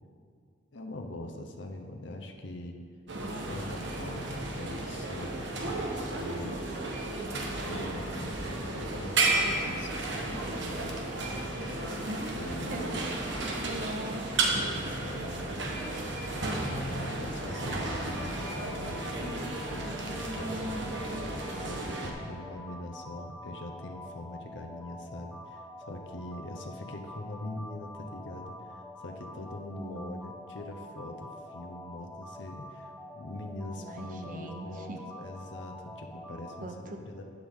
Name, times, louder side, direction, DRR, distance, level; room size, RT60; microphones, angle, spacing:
voice 1, 0.7-2.8 3.3-5.3 6.1-6.9 7.5-11.1 11.8-13.0 14.3-16.2 16.7-20.8 21.5-37.2, left 1 dB, 80° left, 3 dB, 0.8 m, -43 dB
sound 1, 3.1-22.1, right 2 dB, 80° right, 1.3 m, -33 dB
voice 2, 12.1-14.4 15.0-15.1 17.2-17.4 29.8-30.2 33.8-35.0 36.6-37.0, right 1 dB, 45° right, 4 dB, 0.7 m, -41 dB
sound 2, 17.4-36.7, left 1 dB, 5° left, 0.6 m, -46 dB
12.0 x 8.1 x 3.7 m, 2.3 s
head